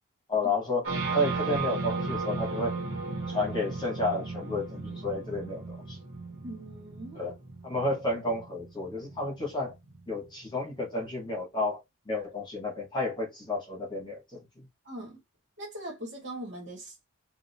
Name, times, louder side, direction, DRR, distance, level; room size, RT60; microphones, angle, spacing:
voice 1, 0.3-0.8 1.1-2.8 3.3-6.0 7.2-7.3 7.6-9.7 10.1-14.4, left 2 dB, 20° left, 1.3 m, -31 dB
sound 1, 0.8-10.5, right 3 dB, 80° right, 1.1 m, -35 dB
voice 2, 6.4-7.3 14.8-15.2 15.6-17.1, right 1 dB, 55° right, 1.5 m, -41 dB
2.8 x 2.5 x 2.6 m
head